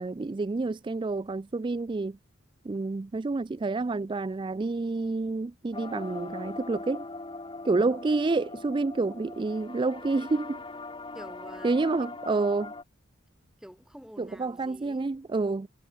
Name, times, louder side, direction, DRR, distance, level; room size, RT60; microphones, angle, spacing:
voice 1, 0.0-2.2 2.6-7.0 7.6-10.6 11.6-12.7 14.2-15.7, right 3 dB, 20° right, 0.3 m, -28 dB
sound 1, 5.7-12.8, left 3 dB, 25° left, 1.6 m, -41 dB
voice 2, 11.1-11.7 13.6-15.0, equal, 5° right, 1.2 m, -47 dB
head